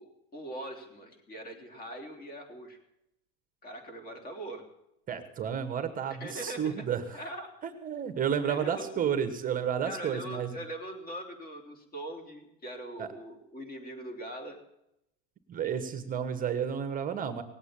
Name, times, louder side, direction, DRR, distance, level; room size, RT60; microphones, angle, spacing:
voice 1, 0.0-2.8 3.6-4.7 6.2-6.7 7.1-7.5 8.4-8.9 9.9-14.6, right 1 dB, 25° left, 4 dB, 3.6 m, -41 dB
voice 2, 5.1-7.2 7.6-10.5 13.0-13.1 15.5-17.4, right 8 dB, 25° right, 9 dB, 1.3 m, -31 dB
18.5 x 8.2 x 8.8 m, 0.81 s
supercardioid pair, 140°, 35 cm